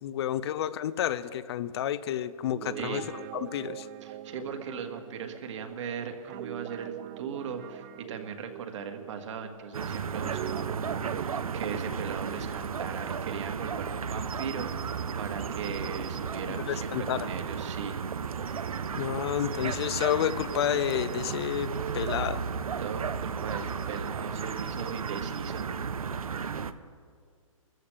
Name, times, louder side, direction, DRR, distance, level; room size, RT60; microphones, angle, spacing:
voice 1, 0.0-3.9 16.7-17.3 19.0-22.4, left 11 dB, 50° left, 15 dB, 0.6 m, -30 dB
Guitar, 2.4-9.6 10.1-13.8, right 13 dB, 25° right, 0.4 m, -43 dB
voice 2, 2.7-3.1 4.0-18.0 22.8-25.7, right 6 dB, 60° right, 5 dB, 1.8 m, -39 dB
sound 1, 9.7-26.7, right 6 dB, 85° right, 0.7 m, -34 dB
23.5 x 14.0 x 3.4 m, 2.1 s
hypercardioid pair, 140°, 18 cm